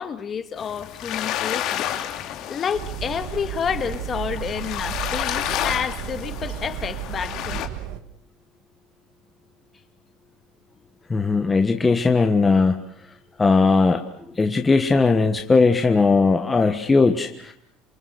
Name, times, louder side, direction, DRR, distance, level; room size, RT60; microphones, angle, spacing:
voice 1, 0.0-7.7, left 7 dB, 35° left, 1.9 m, -30 dB
sound 1, 0.6-7.7, left 11 dB, 60° left, 2.6 m, -31 dB
sound 2, 2.7-8.0, right 11 dB, 80° right, 1.9 m, -33 dB
voice 2, 11.1-12.7 13.4-14.0 14.4-17.5, left 4 dB, 15° left, 1.4 m, -18 dB
28.0 x 24.0 x 6.7 m
cardioid pair, 130°, 0 cm